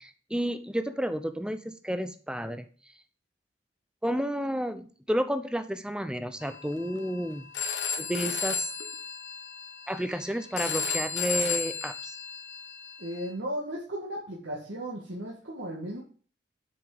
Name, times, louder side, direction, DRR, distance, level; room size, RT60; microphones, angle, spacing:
voice 1, 0.0-2.7 4.0-7.5 8.0-8.7 9.9-12.2, equal, 5° right, 10 dB, 0.6 m, -31 dB
Telephone, 6.4-13.3, left 5 dB, 80° left, 1.4 m, -34 dB
voice 2, 13.0-16.0, right 1 dB, 85° right, -4 dB, 2.0 m, -35 dB
7.8 x 5.9 x 5.0 m, 0.41 s
head